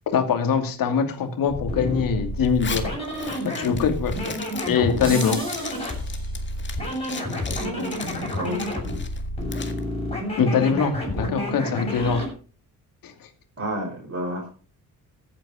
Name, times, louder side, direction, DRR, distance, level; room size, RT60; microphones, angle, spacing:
voice 1, 0.1-2.9 3.4-4.3 4.7-5.4 10.4-12.2 13.0-13.1, left 6 dB, 75° left, 6 dB, 2.6 m, -23 dB
sound 1, 1.5-12.3, left 1 dB, 15° left, 7.6 m, -30 dB
Zipper (clothing), 2.4-9.8, left 5 dB, 35° left, 2.0 m, -37 dB
sound 2, 5.0-6.7, right 1 dB, 15° right, 5.6 m, -38 dB
voice 2, 7.1-8.8 13.6-14.5, equal, 40° right, 1 dB, 5.0 m, -32 dB
14.5 x 8.9 x 5.0 m, 0.38 s
cardioid pair, 125°, 34 cm